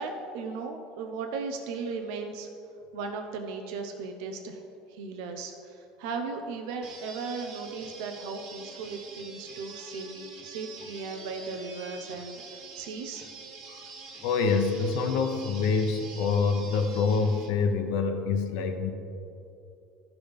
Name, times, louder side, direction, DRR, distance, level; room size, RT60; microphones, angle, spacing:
voice 1, 0.0-2.5 2.9-4.6 4.9-13.3, right 4 dB, 80° right, 4 dB, 0.8 m, -37 dB
sound 1, 6.8-17.5, right 4 dB, 65° right, 1.6 m, -46 dB
voice 2, 14.2-18.9, left 4 dB, 80° left, 5 dB, 0.9 m, -26 dB
15.0 x 6.0 x 3.4 m, 2.8 s
supercardioid pair, 120°, 2 cm